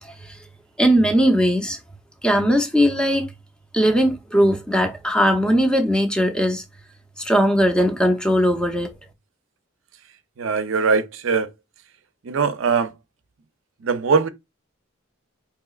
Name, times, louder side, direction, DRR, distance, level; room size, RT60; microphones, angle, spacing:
voice 1, 0.0-0.4 0.8-1.8 2.2-3.3 3.7-6.6 7.2-8.9, equal, 5° left, 0.6 m, -19 dB
voice 2, 10.4-11.5 12.2-12.9 13.8-14.3, right 5 dB, 70° right, 0.5 m, -21 dB
4.8 x 2.9 x 2.3 m
head